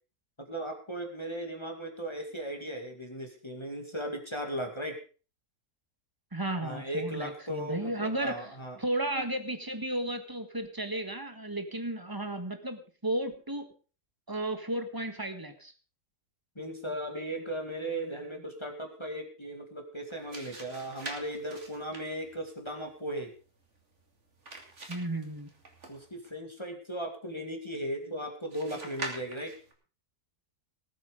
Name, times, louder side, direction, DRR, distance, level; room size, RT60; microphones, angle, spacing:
voice 1, 0.4-5.0 6.6-8.8 16.6-23.3 25.9-29.6, right 1 dB, 20° left, 3 dB, 2.3 m, -37 dB
voice 2, 6.3-8.5 8.8-13.7 14.3-15.7 24.9-25.5, right 1 dB, 15° right, 8 dB, 1.5 m, -34 dB
sound 1, 20.0-26.3 28.5-29.7, right 2 dB, 50° right, 2.7 m, -45 dB
19.0 x 8.6 x 5.1 m, 0.37 s
omnidirectional pair, 1.6 m